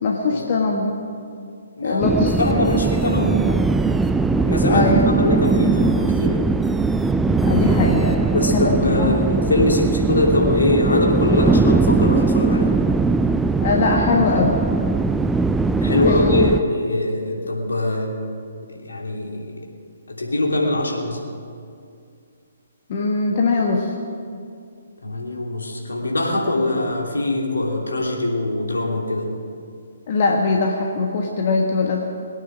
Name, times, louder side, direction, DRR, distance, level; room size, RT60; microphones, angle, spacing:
voice 1, 0.0-0.9 1.8-2.6 4.7-5.1 7.5-9.1 13.6-14.6 15.9-16.5 22.9-23.9 30.1-32.0, left 3 dB, 45° left, 0 dB, 1.5 m, -21 dB
voice 2, 1.8-3.6 4.4-6.5 8.3-12.7 15.8-18.2 18.8-19.5 20.1-21.2 25.0-29.3, left 1 dB, 70° left, -1 dB, 3.0 m, -22 dB
sound 1, 2.0-16.6, right 3 dB, 5° right, 0.4 m, -20 dB
22.0 x 9.3 x 6.2 m, 2.3 s
figure-of-eight pair, 130°, 0 cm